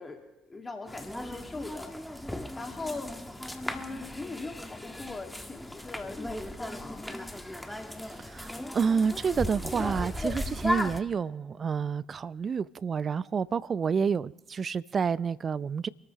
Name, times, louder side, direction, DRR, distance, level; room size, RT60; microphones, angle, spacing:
voice 1, 0.0-2.3 2.5-3.2 3.7-7.2, left 3 dB, 25° left, 2.2 m, -41 dB
sound 1, 0.9-11.0, left 1 dB, 5° left, 1.6 m, -36 dB
voice 2, 8.2-15.9, right 6 dB, 40° right, 0.5 m, -29 dB
27.5 x 13.5 x 3.1 m
hypercardioid pair, 55°, 0 cm